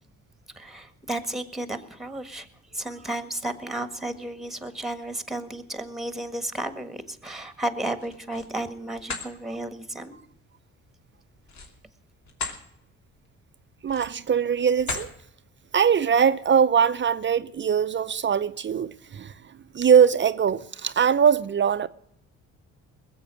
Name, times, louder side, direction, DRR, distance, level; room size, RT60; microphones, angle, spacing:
voice 1, 0.5-10.2, right 1 dB, ahead, 1.6 m, -33 dB
sound 1, 8.0-8.5 8.9-9.3 11.4-12.6 13.1-13.3 13.8-14.3 14.8-15.1, left 4 dB, 65° left, 2.9 m, -35 dB
voice 2, 13.8-15.1 15.7-19.3 19.7-21.9, right 7 dB, 40° right, 0.7 m, -21 dB
20.5 x 8.0 x 6.3 m
cardioid pair, 90°, 30 cm